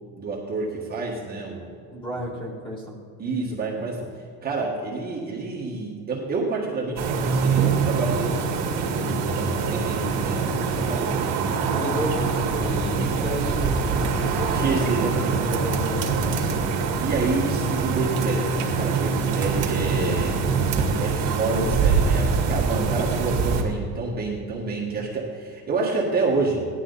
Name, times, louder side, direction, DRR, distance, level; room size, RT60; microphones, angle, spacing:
voice 1, 0.2-1.7 3.2-4.1 4.4-11.3 14.5-15.4 16.4-16.7 17.0-20.6 21.0-26.7, right 3 dB, 25° right, -3 dB, 1.6 m, -28 dB
voice 2, 1.9-3.0 11.7-16.0, equal, 15° left, -2 dB, 2.2 m, -32 dB
sound 1, 7.0-23.6, right 5 dB, 50° right, 2.0 m, -24 dB
16.5 x 11.5 x 4.0 m, 2.1 s
cardioid pair, 170°, 37 cm